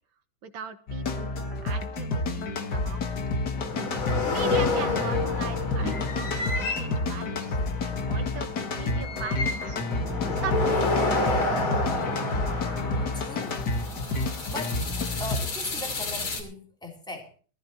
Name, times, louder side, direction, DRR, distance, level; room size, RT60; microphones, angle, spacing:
voice 1, 0.4-1.4 1.6-3.2 4.3-6.2 6.7-7.6 7.8-9.8 10.3-11.6, right 6 dB, 75° right, 7 dB, 2.2 m, -39 dB
sound 1, 0.9-15.4, left 2 dB, 55° left, 2.1 m, -30 dB
sound 2, 3.6-16.4, left 3 dB, 90° left, 3.6 m, -30 dB
voice 2, 13.1-13.6 14.5-14.8 15.2-17.4, left 1 dB, ahead, 1 dB, 3.4 m, -39 dB
21.0 x 15.0 x 3.0 m, 0.38 s
omnidirectional pair, 2.2 m